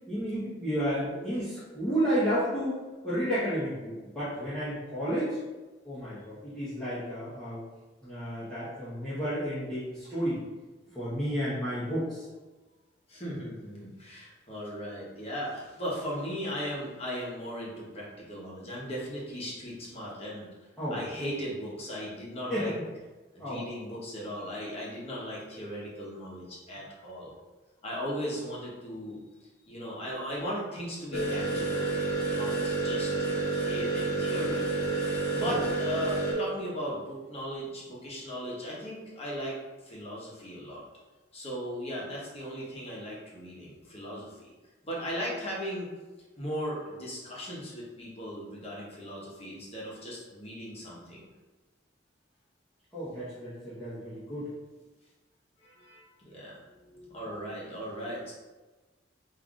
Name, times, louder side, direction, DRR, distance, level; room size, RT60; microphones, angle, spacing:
voice 1, 0.1-5.4 5.8-7.7 8.0-10.4 10.9-12.3 20.8-21.0 22.5-22.9 23.4-23.6 35.4-35.6 52.9-54.5, equal, 5° left, -15 dB, 1.0 m, -32 dB
voice 2, 13.1-20.5 20.9-22.7 23.3-27.3 27.8-29.2 29.7-31.9 32.3-33.1 33.7-34.6 35.1-40.8 41.3-44.4 44.8-45.9 46.4-51.3 55.6-58.3, equal, 35° left, -6 dB, 1.0 m, -37 dB
sound 1, 31.1-36.3, right 3 dB, 55° left, 1.2 m, -29 dB
5.5 x 2.6 x 2.4 m, 1.2 s
head